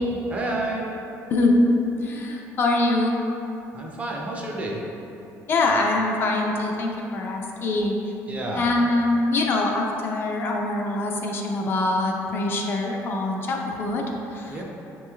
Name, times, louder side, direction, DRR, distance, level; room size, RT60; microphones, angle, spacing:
voice 1, 0.3-0.9 3.7-4.9 8.3-8.7 14.5-14.6, right 2 dB, 25° right, -1 dB, 0.5 m, -30 dB
voice 2, 2.0-3.2 5.5-8.0 8.5-14.1 14.3-14.6, left 2 dB, 40° left, 0 dB, 0.3 m, -24 dB
5.4 x 3.0 x 2.3 m, 2.9 s
cardioid pair, 155°, 6 cm